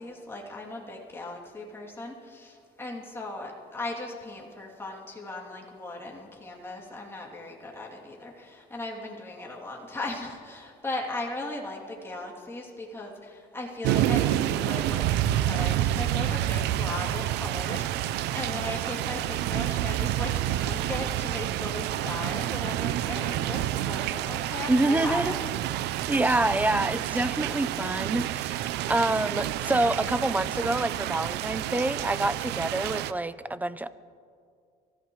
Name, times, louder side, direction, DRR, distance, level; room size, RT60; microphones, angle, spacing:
voice 1, 0.0-25.4 25.8-26.0, left 2 dB, 15° left, -3 dB, 2.9 m, -37 dB
sound 1, 13.8-33.1, right 13 dB, 85° right, 0.5 m, -29 dB
voice 2, 24.7-25.4 26.1-33.9, right 2 dB, 10° right, 14 dB, 0.5 m, -27 dB
24.5 x 15.0 x 3.2 m, 2.3 s
cardioid pair, 110°, 17 cm